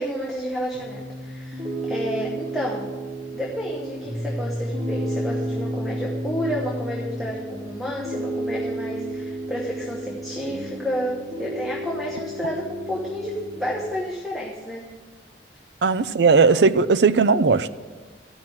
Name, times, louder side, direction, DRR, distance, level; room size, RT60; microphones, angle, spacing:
voice 1, 0.0-2.9 3.3-14.9, equal, ahead, -5 dB, 1.2 m, -30 dB
Piano, 0.7-13.8, right 1 dB, 35° right, 1.9 m, -31 dB
voice 2, 15.8-17.7, right 4 dB, 70° right, 14 dB, 0.5 m, -17 dB
13.5 x 6.0 x 7.6 m, 1.4 s
head